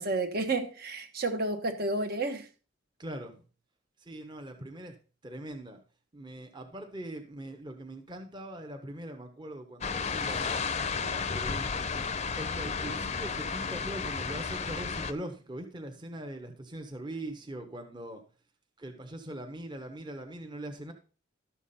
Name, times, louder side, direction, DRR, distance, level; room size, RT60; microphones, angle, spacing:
voice 1, 0.0-2.5, right 2 dB, 50° right, 1.2 m, -31 dB
voice 2, 3.0-3.4 4.0-4.9 5.2-5.8 6.1-10.6 10.9-11.7 12.4-18.2 18.8-20.9, right 1 dB, 20° right, 1.1 m, -41 dB
sound 1, 9.8-15.1, left 5 dB, 35° left, 0.7 m, -33 dB
12.0 x 7.2 x 4.2 m
head